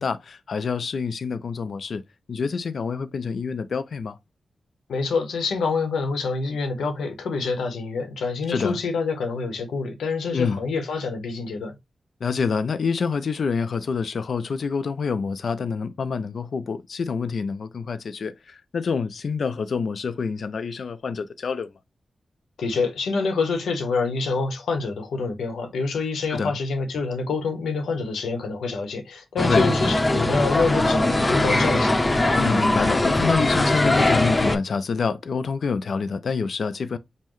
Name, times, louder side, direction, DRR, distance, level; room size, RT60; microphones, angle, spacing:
voice 1, 0.0-2.0 2.3-4.2 8.5-8.8 10.3-10.6 12.2-21.7 26.3-26.6 29.5-29.7 32.4-37.0, left 5 dB, 70° left, 0.5 m, -27 dB
voice 2, 4.9-11.8 22.6-32.0, left 4 dB, 90° left, 0.9 m, -26 dB
sound 1, 29.4-34.6, left 2 dB, 35° left, 0.8 m, -20 dB
5.5 x 2.1 x 3.1 m
cardioid pair, 40°, 0 cm